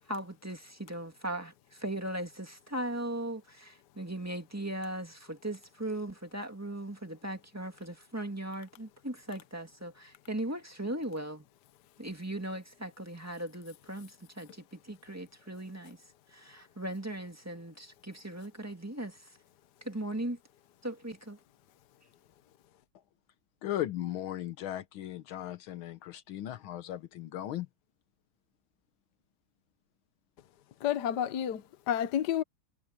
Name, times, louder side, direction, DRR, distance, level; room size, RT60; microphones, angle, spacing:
voice 1, 0.1-11.4 12.0-16.0 16.3-19.4 19.8-20.4 20.8-21.4, right 1 dB, 10° right, 1.9 m, -38 dB
voice 2, 23.6-27.7, left 13 dB, 85° left, 1.7 m, -37 dB
voice 3, 30.8-32.4, left 10 dB, 60° left, 1.4 m, -30 dB
omnidirectional pair, 2.2 m